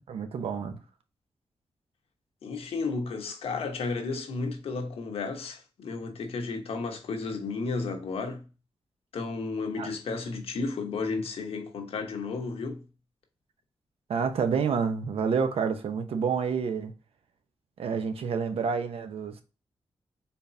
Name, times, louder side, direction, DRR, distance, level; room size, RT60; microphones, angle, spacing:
voice 1, 0.1-0.8 9.8-9.9 14.1-16.9 17.8-19.4, right 6 dB, 80° right, 0.8 m, -28 dB
voice 2, 2.4-8.5 9.1-12.9, left 4 dB, 80° left, 1.1 m, -33 dB
4.5 x 3.5 x 2.7 m
cardioid pair, 70°, 10 cm